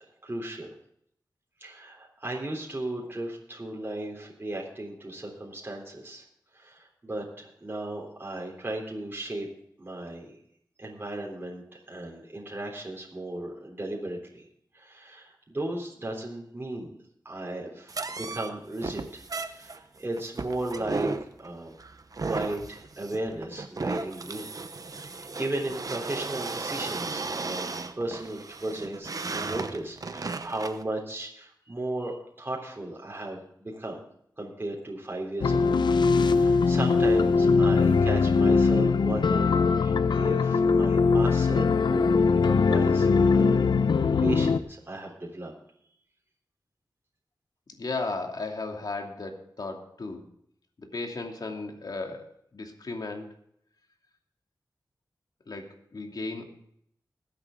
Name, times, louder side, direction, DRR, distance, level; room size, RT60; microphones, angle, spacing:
voice 1, 0.2-0.7 1.6-6.2 6.5-9.5 9.8-10.3 10.8-14.5 14.7-16.9 17.3-21.1 21.4-21.7 22.3-24.5 24.9-34.0 34.4-35.8 36.1-43.1 43.4-43.6 44.2-45.5, right 1 dB, 30° right, -2 dB, 3.5 m, -35 dB
sound 1, 17.9-30.8, right 3 dB, 55° right, 1.0 m, -35 dB
sound 2, 35.4-44.6, left 4 dB, 90° left, 0.7 m, -21 dB
voice 2, 47.7-50.3 50.8-53.3 55.5-56.5, left 3 dB, 60° left, 2 dB, 2.7 m, -35 dB
21.0 x 8.6 x 3.8 m, 0.70 s
wide cardioid pair, 65°, 7 cm